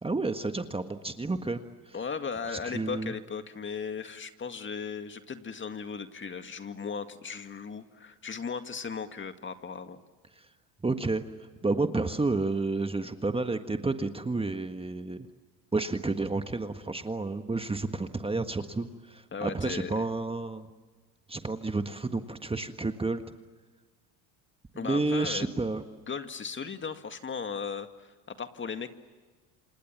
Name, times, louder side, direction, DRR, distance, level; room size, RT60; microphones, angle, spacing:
voice 1, 0.0-1.9 2.6-3.1 10.8-11.2 11.6-15.3 15.7-20.7 21.3-23.2 24.7-25.8, right 3 dB, 15° right, 8 dB, 1.6 m, -30 dB
voice 2, 1.9-10.0 19.3-20.0 24.7-25.5 26.1-28.9, left 5 dB, 25° left, 8 dB, 2.0 m, -37 dB
28.0 x 27.5 x 7.4 m, 1.4 s
supercardioid pair, 85°, 42 cm